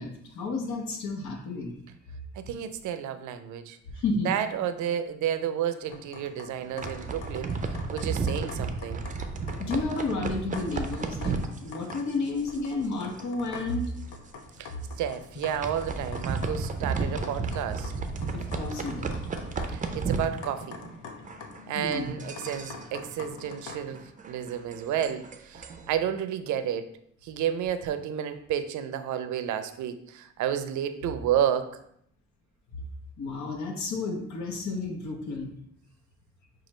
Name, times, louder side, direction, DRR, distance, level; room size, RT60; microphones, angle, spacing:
voice 1, 0.0-1.8 3.9-4.3 9.6-13.9 18.3-19.1 21.7-22.1 33.2-35.5, left 3 dB, 70° left, 2 dB, 1.0 m, -31 dB
voice 2, 2.4-3.8 4.2-9.0 14.6-14.7 15.0-17.9 19.7-20.8 21.7-26.9 27.2-31.8, right 9 dB, 75° right, 10 dB, 0.5 m, -31 dB
sound 1, 5.9-24.0, left 5 dB, 90° left, 0.6 m, -45 dB
sound 2, 6.6-12.9 13.2-13.5 13.8-13.9 14.4-14.6 15.2-21.0 21.2-25.9, right 4 dB, 25° right, 0.5 m, -33 dB
5.9 x 2.4 x 3.1 m, 0.71 s
cardioid pair, 90°, 30 cm